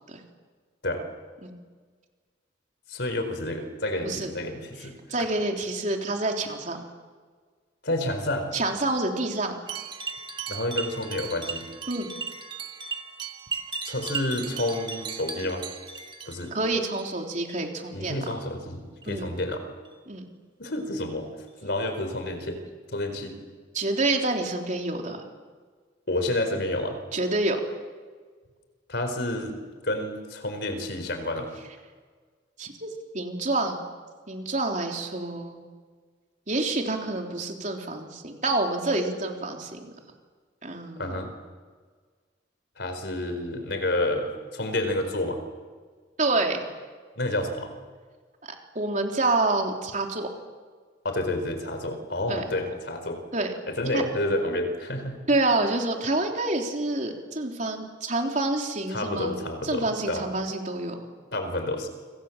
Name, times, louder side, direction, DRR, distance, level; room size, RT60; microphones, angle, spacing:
voice 1, 2.9-4.9 7.8-8.5 10.5-11.7 13.8-15.6 16.3-16.5 17.9-19.6 20.6-21.3 21.6-22.6 22.9-23.4 26.1-27.0 28.9-29.6 29.8-31.5 41.0-41.3 42.8-45.4 47.2-47.7 51.0-53.2 53.7-55.2 58.9-60.3 61.3-61.9, left 1 dB, 60° left, 7 dB, 4.5 m, -29 dB
voice 2, 5.1-6.8 8.5-9.5 11.9-12.1 16.5-18.2 19.1-19.3 20.1-20.2 23.7-25.2 27.1-27.6 32.6-33.9 34.3-35.6 36.5-39.9 40.6-41.2 46.2-46.7 48.8-50.3 52.3-52.4 53.3-53.5 53.9-54.0 55.3-59.4 59.6-61.1, right 2 dB, 40° right, 2 dB, 3.6 m, -27 dB
sound 1, 9.7-17.0 17.4-17.8 18.2-18.4 19.0-19.2 19.8-19.9 20.6-20.8 21.5-21.6, right 5 dB, 25° right, 1.7 m, -36 dB
29.5 x 26.5 x 7.5 m, 1.5 s
head